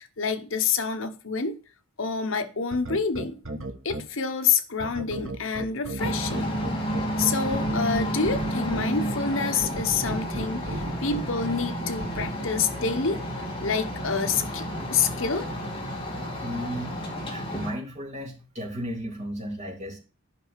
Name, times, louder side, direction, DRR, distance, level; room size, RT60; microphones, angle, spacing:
voice 1, 0.0-1.6 2.0-3.4 3.8-6.5 7.2-13.2 13.6-15.5, left 5 dB, 65° left, 1.0 m, -27 dB
sound 1, 2.7-4.0 4.8-8.8 9.6-11.2 12.0-12.3, right 2 dB, 70° right, 1.5 m, -34 dB
sound 2, 6.0-17.7, equal, 25° left, 2.6 m, -31 dB
voice 2, 16.4-16.9 17.3-20.0, equal, 35° right, 3.1 m, -34 dB
10.5 x 5.7 x 5.1 m
head